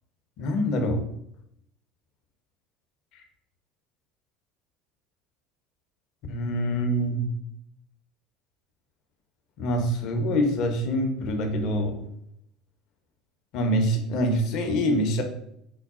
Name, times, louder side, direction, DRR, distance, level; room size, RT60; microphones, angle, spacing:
voice 1, 0.4-1.0 6.3-7.3 9.6-11.9 13.5-15.2, equal, 60° left, 5 dB, 0.7 m, -25 dB
3.8 x 2.3 x 3.6 m, 0.74 s
hypercardioid pair, 80°, 0 cm